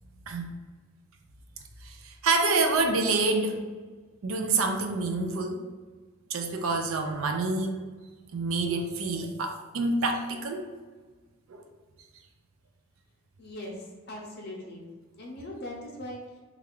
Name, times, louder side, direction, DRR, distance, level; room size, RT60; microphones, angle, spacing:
voice 1, 1.8-3.6 4.2-5.6 6.3-7.8 8.3-10.6 11.5-11.6, right 3 dB, 70° right, 5 dB, 0.4 m, -27 dB
voice 2, 13.4-14.8 15.2-16.2, left 1 dB, 50° left, -1 dB, 0.7 m, -40 dB
3.2 x 2.4 x 3.6 m, 1.4 s
head